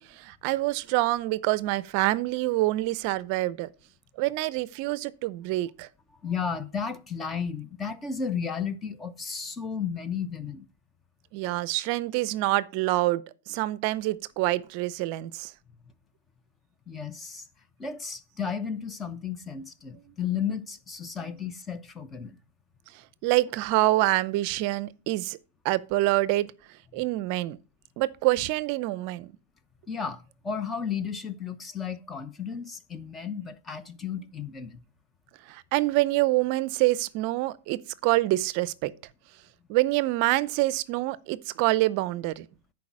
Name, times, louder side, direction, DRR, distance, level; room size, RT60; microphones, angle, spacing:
voice 1, 0.0-3.7 4.2-5.9 11.3-15.5 20.2-20.3 21.2-21.4 22.9-25.4 25.6-27.6 28.0-29.3 34.1-34.3 35.4-38.9 39.7-42.5, right 18 dB, 45° right, 0.5 m, -26 dB
voice 2, 6.2-10.6 16.9-17.5 17.8-22.4 26.9-27.0 29.9-34.8, left 6 dB, 15° left, 0.8 m, -33 dB
10.5 x 4.7 x 6.0 m
supercardioid pair, 155°, 0 cm